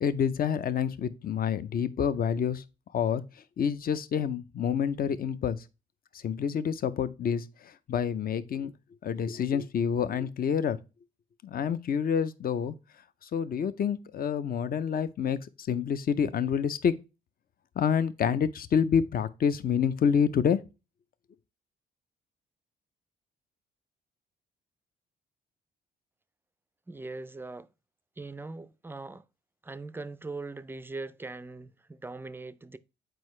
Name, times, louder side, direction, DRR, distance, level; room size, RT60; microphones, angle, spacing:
voice 1, 0.0-2.6 2.9-3.2 3.6-5.6 6.2-8.7 9.0-10.8 11.4-12.7 13.2-16.9 17.8-20.6, left 7 dB, 50° left, 0.6 m, -28 dB
voice 2, 26.9-27.7 28.2-29.2 29.6-32.8, right 3 dB, 10° right, 0.4 m, -40 dB
7.8 x 4.6 x 3.2 m
cardioid pair, 90°, 20 cm